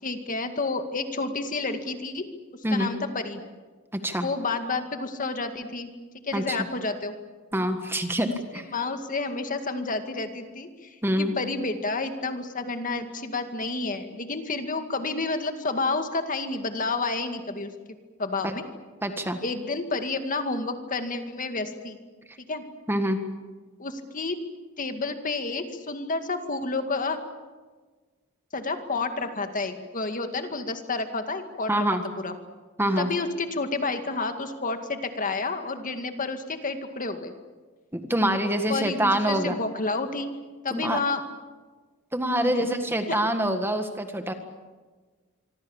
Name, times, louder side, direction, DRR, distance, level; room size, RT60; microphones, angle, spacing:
voice 1, 0.0-2.3 2.7-3.4 4.2-5.9 6.3-7.1 8.7-17.7 18.2-18.6 19.4-22.0 22.5-22.6 23.8-24.4 24.8-27.2 28.5-31.8 32.2-32.3 33.0-37.3 38.7-40.3 40.6-41.2 42.4-43.2, left 3 dB, 40° left, 7 dB, 2.0 m, -30 dB
voice 2, 3.9-4.3 6.3-6.6 7.5-8.7 11.0-11.3 18.4-18.5 19.0-19.4 22.9-23.2 31.7-32.0 32.8-33.1 37.9-39.6 40.7-41.0 42.1-44.3, right 1 dB, 10° right, 7 dB, 1.6 m, -25 dB
25.5 x 25.5 x 7.2 m, 1.4 s
head